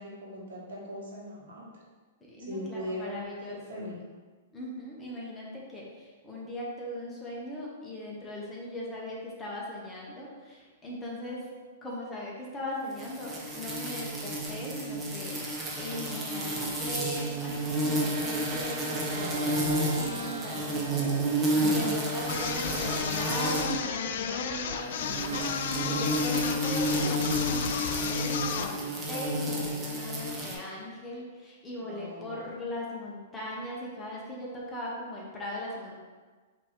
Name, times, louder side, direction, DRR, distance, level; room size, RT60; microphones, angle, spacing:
voice 1, 0.0-1.8 2.4-3.3 3.7-4.0 21.5-21.8 31.8-32.4, left 1 dB, 80° right, -4 dB, 1.4 m, -39 dB
voice 2, 2.2-3.9 4.5-11.5 11.8-15.4 15.8-35.9, left 1 dB, 10° left, -5 dB, 1.0 m, -39 dB
sound 1, 13.0-23.8 24.9-30.5, right 1 dB, 15° right, 0.7 m, -31 dB
sound 2, 17.6-25.0 25.3-27.7, right 4 dB, 50° right, 1.0 m, -43 dB
sound 3, 22.3-28.8, left 7 dB, 60° left, 0.3 m, -33 dB
5.2 x 2.9 x 3.6 m, 1.4 s
hypercardioid pair, 150°, 0 cm